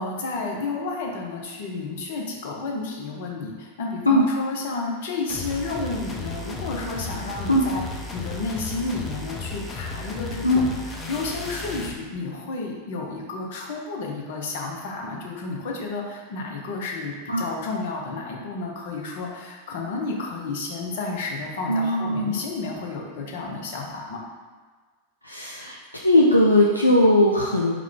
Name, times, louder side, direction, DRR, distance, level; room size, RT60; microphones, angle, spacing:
voice 1, 0.0-7.8 8.1-24.2, left 3 dB, 55° left, 0 dB, 0.7 m, -31 dB
sound 1, 5.3-12.0, left 3 dB, 15° left, 0.5 m, -34 dB
voice 2, 21.7-22.4 25.2-27.7, left 1 dB, 85° left, -2 dB, 0.3 m, -19 dB
4.7 x 2.2 x 3.7 m, 1.4 s
figure-of-eight pair, 90°, 0 cm